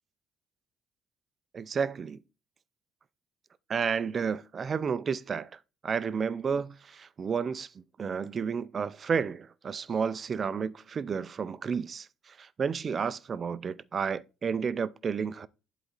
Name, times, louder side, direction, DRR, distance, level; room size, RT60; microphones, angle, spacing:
voice 1, 1.5-2.2 3.7-15.5, right 6 dB, 35° right, 0.5 m, -31 dB
11.5 x 4.1 x 4.0 m
cardioid pair, 135°, 0 cm